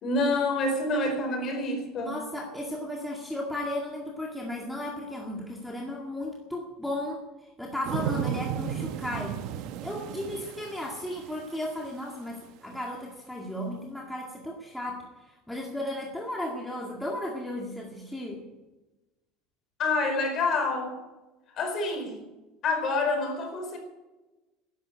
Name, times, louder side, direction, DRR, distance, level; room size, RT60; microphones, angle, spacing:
voice 1, 0.0-2.1 19.8-21.0 21.6-22.1 22.6-23.8, left 2 dB, 35° left, 5 dB, 4.5 m, -27 dB
voice 2, 2.0-9.4 9.8-18.4, left 1 dB, ahead, -2 dB, 2.0 m, -35 dB
sound 1, 7.8-11.9 12.4-12.5, right 10 dB, 55° right, 1.0 m, -34 dB
13.5 x 11.5 x 9.1 m, 1.1 s
cardioid pair, 165°, 0 cm